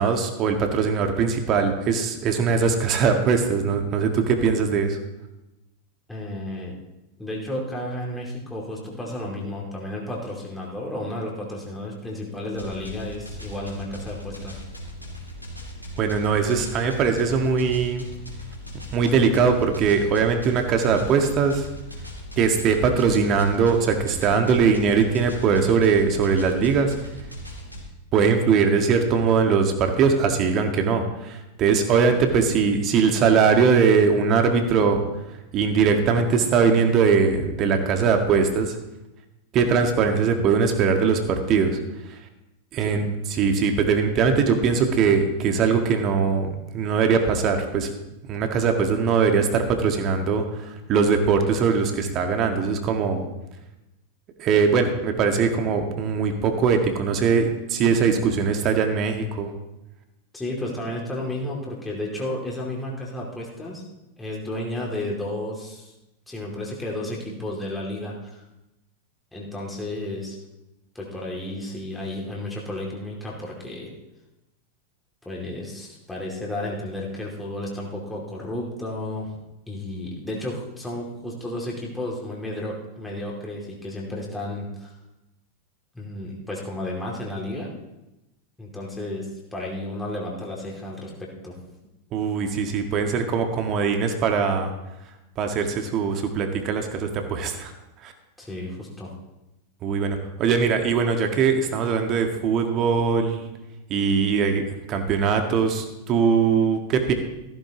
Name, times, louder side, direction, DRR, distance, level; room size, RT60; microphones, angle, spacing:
voice 1, 0.0-5.0 16.0-18.0 18.9-21.7 22.4-26.9 28.1-35.0 35.5-38.8 39.5-41.8 42.1-42.2 42.7-46.5 46.7-47.9 48.3-53.2 54.4-59.5 92.1-94.7 95.4-97.7 98.0-98.1 99.8-103.4 103.9-104.6 104.9-107.1, right 5 dB, 35° right, 5 dB, 1.7 m, -21 dB
voice 2, 6.1-6.8 7.2-14.6 42.8-43.1 60.3-63.8 64.2-65.9 66.3-68.4 69.3-70.4 70.9-73.9 75.2-79.3 79.7-84.9 85.9-87.7 88.6-91.6 98.4-99.1, left 1 dB, 5° left, -3 dB, 2.6 m, -32 dB
sound 1, 12.5-27.8, equal, 90° left, 2.8 m, -38 dB
15.0 x 14.0 x 3.0 m, 0.96 s
figure-of-eight pair, 90°, 0 cm